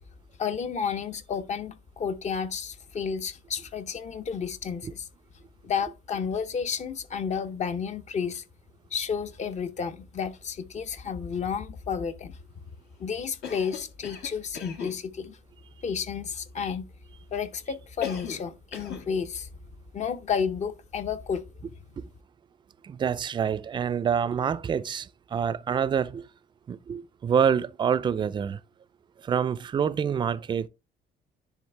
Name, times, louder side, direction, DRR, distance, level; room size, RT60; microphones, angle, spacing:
voice 1, 0.4-5.1 5.6-8.4 8.9-12.4 13.0-15.4 15.8-16.8 17.3-19.5 19.9-21.4, left 6 dB, 45° left, 0.7 m, -31 dB
Cough, 13.4-15.0 18.0-18.5 18.7-19.1, left 8 dB, 75° left, 1.5 m, -37 dB
voice 2, 22.8-26.3 26.7-28.6 29.2-30.7, right 7 dB, 25° right, 0.4 m, -27 dB
10.0 x 3.5 x 3.3 m
cardioid pair, 110°, 17 cm